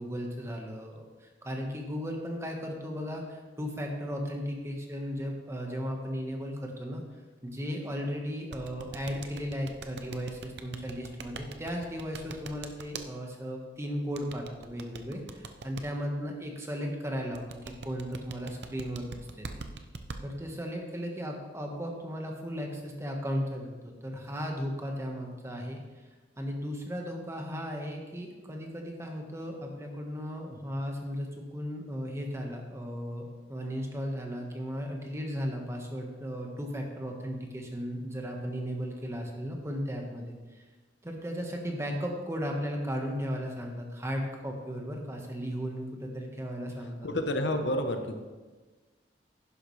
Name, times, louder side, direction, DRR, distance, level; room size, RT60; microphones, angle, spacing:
voice 1, 0.0-7.0 7.4-19.5 20.2-25.8 26.4-40.6 41.0-47.1, equal, 15° right, 1 dB, 1.4 m, -36 dB
sound 1, 8.5-13.0 14.1-15.8 17.3-20.2, right 4 dB, 65° right, 0.7 m, -41 dB
voice 2, 47.0-48.2, left 1 dB, 80° left, 6 dB, 1.0 m, -29 dB
11.0 x 10.5 x 3.3 m, 1.3 s
head